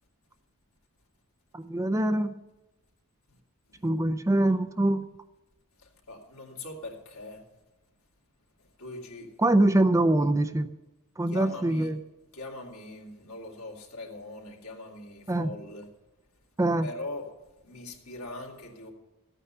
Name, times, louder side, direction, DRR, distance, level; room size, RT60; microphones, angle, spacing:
voice 1, 1.5-2.3 3.8-5.1 9.4-10.7 11.2-12.0 15.3-15.5 16.6-16.9, right 1 dB, 15° right, 10 dB, 0.4 m, -24 dB
voice 2, 5.8-7.4 8.8-9.3 11.3-11.9 12.3-15.9 16.8-17.3 17.6-18.9, left 2 dB, 85° left, -1 dB, 2.6 m, -41 dB
14.0 x 9.0 x 5.7 m, 1.1 s
head